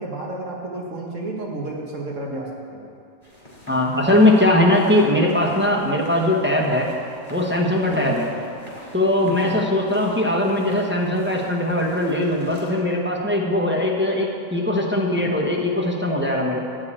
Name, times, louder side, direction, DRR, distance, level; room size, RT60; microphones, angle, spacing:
voice 1, 0.0-2.8 7.9-8.2 9.2-9.6 16.5-16.6, right 2 dB, 60° right, -2 dB, 2.0 m, -31 dB
sound 1, 3.2-12.7, equal, 35° left, 3.7 m, -43 dB
voice 2, 3.7-6.9 7.3-8.3 8.9-16.6, left 1 dB, 10° right, -1 dB, 1.1 m, -20 dB
14.5 x 4.9 x 8.8 m, 2.6 s
omnidirectional pair, 1.5 m